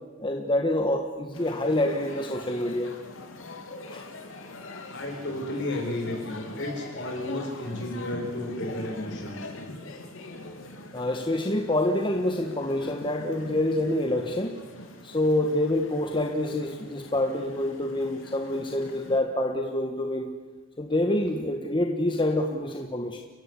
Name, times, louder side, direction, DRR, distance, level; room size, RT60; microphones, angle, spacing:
voice 1, 0.2-2.9 3.9-4.1 10.9-14.6 15.0-20.3 20.8-23.2, left 1 dB, 25° left, 3 dB, 1.5 m, -27 dB
sound 1, 1.3-19.2, left 2 dB, 85° left, 3.3 m, -43 dB
voice 2, 4.8-9.4, left 1 dB, 60° left, 0 dB, 7.3 m, -33 dB
30.0 x 15.5 x 8.5 m, 1.3 s
head